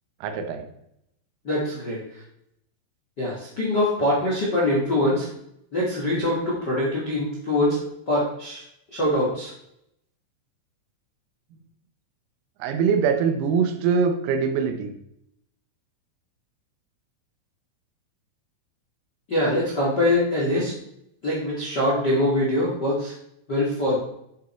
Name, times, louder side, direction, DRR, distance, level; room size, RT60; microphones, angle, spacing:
voice 1, 0.2-0.7 11.5-11.6 12.6-14.9, right 6 dB, 85° right, 7 dB, 3.8 m, -23 dB
voice 2, 1.4-2.2 3.2-5.3 5.7-7.8 8.1-8.6 8.9-9.5 19.3-20.7 21.2-23.1 23.5-24.0, left 1 dB, 45° left, -5 dB, 1.3 m, -23 dB
11.0 x 7.2 x 4.5 m, 0.77 s
omnidirectional pair, 6.0 m